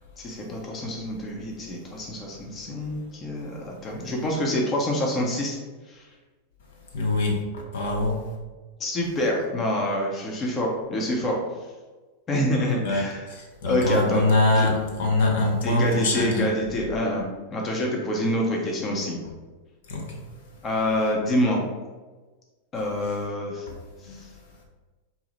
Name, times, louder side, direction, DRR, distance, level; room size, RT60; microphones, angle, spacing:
voice 1, 0.2-5.6 5.9-6.0 8.8-11.4 12.3-13.2 13.7-14.2 14.5-14.7 15.6-17.2 17.5-19.2 20.6-21.6 22.7-23.7 24.1-24.3, left 1 dB, 25° left, -1 dB, 0.8 m, -26 dB
voice 2, 6.9-8.2 12.8-13.0 13.3-16.5 19.9-20.2 24.1-24.2, left 2 dB, 60° left, -1 dB, 1.0 m, -23 dB
4.2 x 2.8 x 4.1 m, 1.3 s
figure-of-eight pair, 90°, 0 cm